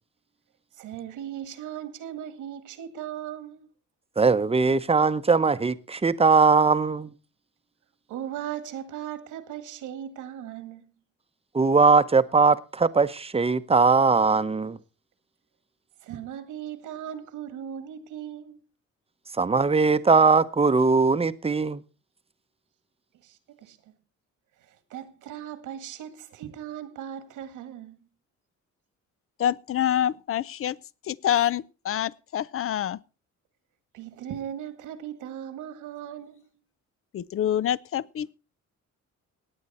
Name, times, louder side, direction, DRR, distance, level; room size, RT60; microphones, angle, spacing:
voice 1, 0.8-3.7 8.1-10.9 16.0-18.6 23.2-23.8 24.6-28.0 33.9-36.5, right 10 dB, 90° right, 1.9 m, -38 dB
voice 2, 4.2-7.1 11.5-14.8 19.4-21.8, right 4 dB, 20° right, 0.8 m, -20 dB
voice 3, 29.4-30.8 31.1-33.0 37.1-38.3, left 10 dB, 45° left, 0.5 m, -26 dB
18.0 x 8.8 x 4.2 m
cardioid pair, 90°, 30 cm